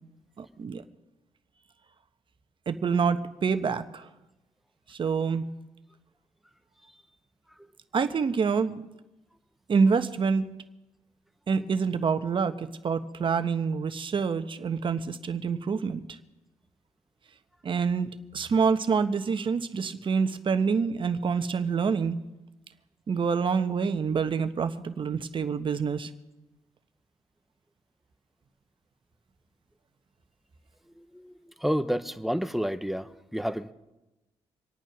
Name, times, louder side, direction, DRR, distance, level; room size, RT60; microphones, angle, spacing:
voice 1, 0.4-0.8 2.7-4.1 4.9-5.4 7.9-8.9 9.7-10.5 11.5-16.2 17.6-22.2 23.1-26.1, right 5 dB, 50° right, 10 dB, 1.2 m, -27 dB
voice 2, 31.0-31.3 31.6-33.7, equal, ahead, 11 dB, 1.0 m, -30 dB
25.5 x 9.1 x 6.1 m, 1.0 s
cardioid pair, 70°, 11 cm